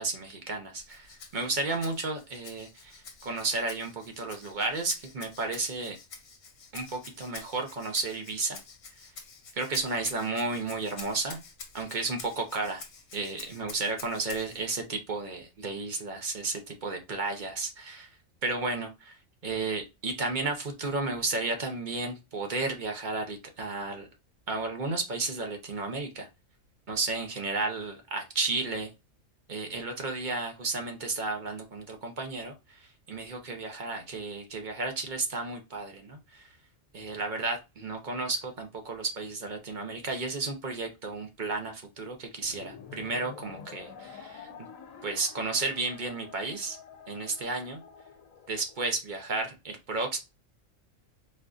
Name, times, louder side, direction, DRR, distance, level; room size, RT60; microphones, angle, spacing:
voice 1, 0.0-6.0 6.7-8.6 9.5-11.4 11.7-12.8 13.1-18.2 18.4-24.1 24.5-26.3 26.9-28.9 29.5-36.5 36.9-44.5 45.0-46.8 47.1-47.8 48.5-50.2, right 3 dB, 45° right, 0.7 m, -33 dB
Rattle (instrument), 0.8-14.6, left 4 dB, 60° left, 1.0 m, -48 dB
sound 1, 42.4-48.9, left 6 dB, 85° left, 1.0 m, -48 dB
4.2 x 2.5 x 2.3 m
omnidirectional pair, 1.4 m